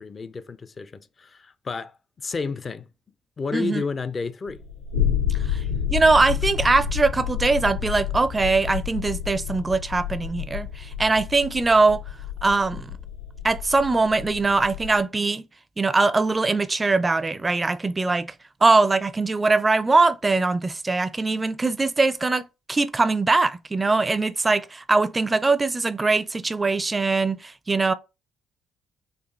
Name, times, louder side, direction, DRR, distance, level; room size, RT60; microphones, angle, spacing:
voice 1, 0.0-1.9 2.2-2.9 3.4-4.6, left 4 dB, 40° left, 0.5 m, -31 dB
voice 2, 3.5-3.8 5.3-5.6 5.9-12.0 12.4-12.9 13.4-15.4 15.8-18.3 18.6-27.9, right 3 dB, 25° right, 0.4 m, -22 dB
sound 1, 4.5-15.0, left 9 dB, 85° left, 1.6 m, -29 dB
4.3 x 2.4 x 3.1 m
hypercardioid pair, 45°, 0 cm